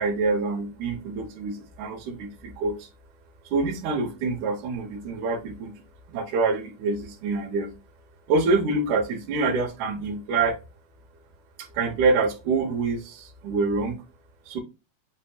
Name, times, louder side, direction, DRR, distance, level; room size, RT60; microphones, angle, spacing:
voice 1, 0.0-2.8 3.5-5.7 6.1-7.7 8.3-10.6 11.8-14.0 14.5-14.6, right 3 dB, 80° right, 3 dB, 2.3 m, -26 dB
7.3 x 2.7 x 2.3 m, 0.28 s
omnidirectional pair, 3.5 m